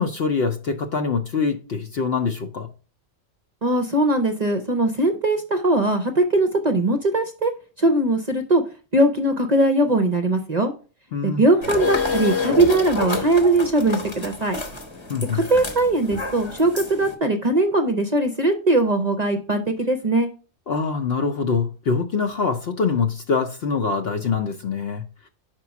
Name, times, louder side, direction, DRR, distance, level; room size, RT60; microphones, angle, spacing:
voice 1, 0.0-2.7 11.1-11.4 15.1-15.4 20.7-25.0, left 5 dB, 60° left, 0.9 m, -24 dB
voice 2, 3.6-7.5 7.8-8.6 8.9-10.7 11.2-14.6 15.3-20.3, right 2 dB, 40° right, 0.7 m, -20 dB
sound 1, 11.6-17.1, left 3 dB, 25° left, 0.9 m, -28 dB
5.2 x 4.5 x 5.8 m
omnidirectional pair, 1.3 m